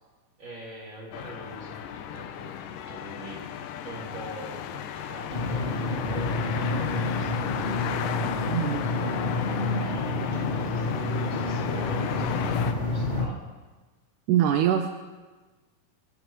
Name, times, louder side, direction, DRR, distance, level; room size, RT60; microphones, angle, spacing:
voice 1, 0.4-3.5 3.8-8.4 8.8-13.5, right 1 dB, 35° right, -3 dB, 5.0 m, -43 dB
sound 1, 1.1-12.7, left 10 dB, 85° left, 2.4 m, -34 dB
sound 2, 5.3-13.3, left 2 dB, 60° left, 0.7 m, -29 dB
voice 2, 8.5-8.8 14.3-14.9, right 10 dB, 80° right, 6 dB, 2.2 m, -23 dB
26.5 x 16.0 x 3.1 m, 1.3 s
omnidirectional pair, 3.9 m